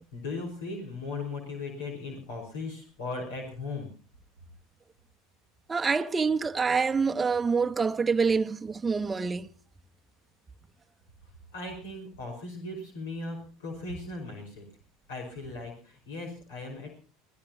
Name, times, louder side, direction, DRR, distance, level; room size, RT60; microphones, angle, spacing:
voice 1, 0.1-3.9 11.5-14.6 15.1-16.9, left 3 dB, 75° left, 5.2 m, -37 dB
voice 2, 5.7-9.5, right 5 dB, 20° right, 0.9 m, -26 dB
27.0 x 16.5 x 3.0 m
hypercardioid pair, 75°, 0 cm